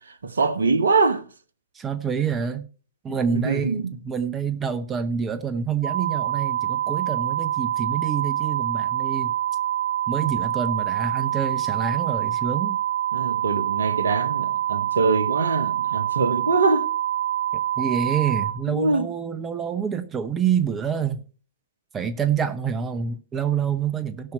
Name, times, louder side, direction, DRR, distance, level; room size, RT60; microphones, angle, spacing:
voice 1, 0.2-1.2 3.1-3.9 10.2-10.3 13.1-16.9 18.7-19.1, right 4 dB, 70° right, 1.1 m, -23 dB
voice 2, 1.7-2.7 3.0-9.3 10.1-12.8 17.8-21.2 21.9-24.3, right 7 dB, 15° right, 0.8 m, -27 dB
sound 1, 5.8-18.5, right 11 dB, 85° right, 1.3 m, -26 dB
17.5 x 5.9 x 4.3 m
figure-of-eight pair, 110°, 0 cm